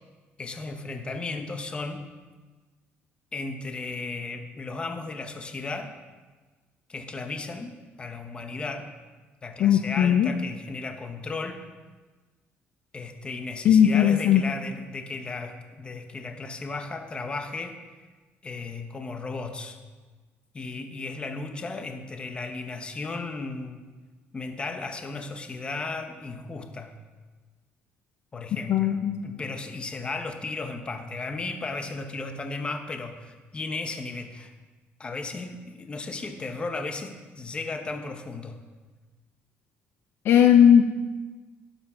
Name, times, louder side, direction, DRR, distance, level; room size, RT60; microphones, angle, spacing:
voice 1, 0.4-2.0 3.3-5.9 6.9-8.9 9.4-11.6 12.9-17.8 18.4-19.8 20.5-23.8 24.3-27.0 28.3-34.5 35.0-38.6, left 3 dB, 25° left, 6 dB, 1.0 m, -35 dB
voice 2, 9.6-10.3 13.6-14.4 28.7-29.2 40.3-40.9, left 9 dB, 65° left, 6 dB, 0.6 m, -18 dB
11.5 x 7.2 x 5.6 m, 1.3 s
cardioid pair, 140°, 4 cm